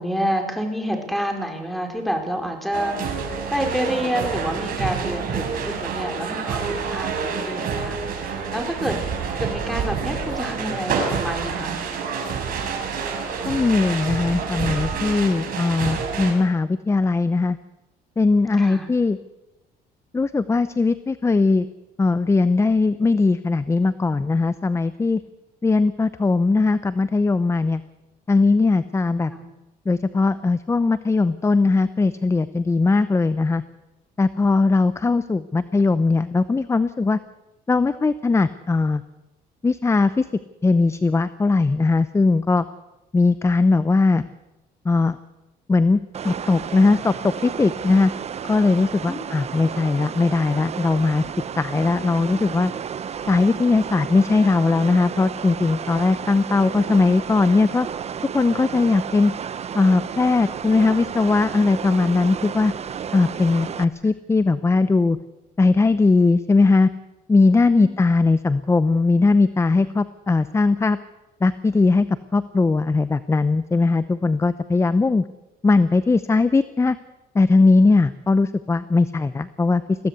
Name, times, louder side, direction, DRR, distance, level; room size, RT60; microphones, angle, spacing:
voice 1, 0.0-9.0 9.4-11.8 18.6-18.9 29.3-29.5 49.1-49.3 67.7-67.9, equal, ahead, 3 dB, 4.6 m, -28 dB
sound 1, 2.7-16.3, right 5 dB, 60° right, 5.6 m, -28 dB
voice 2, 13.5-17.6 18.2-19.2 20.1-21.7 22.0-25.2 25.6-27.8 28.3-29.3 29.9-33.6 34.2-37.2 37.7-39.0 39.6-40.3 40.6-42.6 43.1-44.3 44.8-45.2 45.7-48.1 48.5-51.2 51.6-52.7 53.3-57.9 58.3-59.3 59.7-62.7 63.1-65.2 65.6-66.9 67.3-71.0 71.4-72.1 72.3-75.2 75.6-77.0 77.3-80.0, left 3 dB, 15° left, 14 dB, 0.7 m, -19 dB
sound 2, 46.1-63.8, right 7 dB, 40° right, 0.9 m, -32 dB
22.0 x 16.0 x 8.1 m, 1.0 s
cardioid pair, 110°, 17 cm